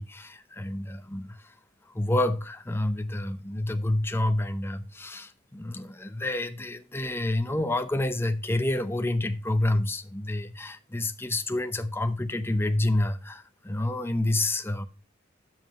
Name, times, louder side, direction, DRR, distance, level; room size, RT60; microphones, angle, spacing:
voice 1, 0.0-1.5 1.8-14.8, left 1 dB, 10° left, 0.7 m, -28 dB
9.1 x 7.4 x 3.0 m
head